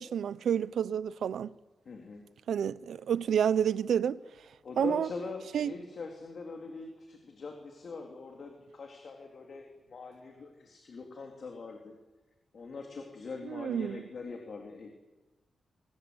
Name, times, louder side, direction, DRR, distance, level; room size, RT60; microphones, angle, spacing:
voice 1, 0.0-1.5 2.5-4.2 4.8-5.1 5.5-5.7 13.5-14.0, right 8 dB, 80° right, 0.7 m, -29 dB
voice 2, 1.8-2.2 4.6-11.9 12.5-14.9, left 4 dB, 50° left, 3.3 m, -42 dB
25.5 x 21.0 x 8.1 m
wide cardioid pair, 130°, 0 cm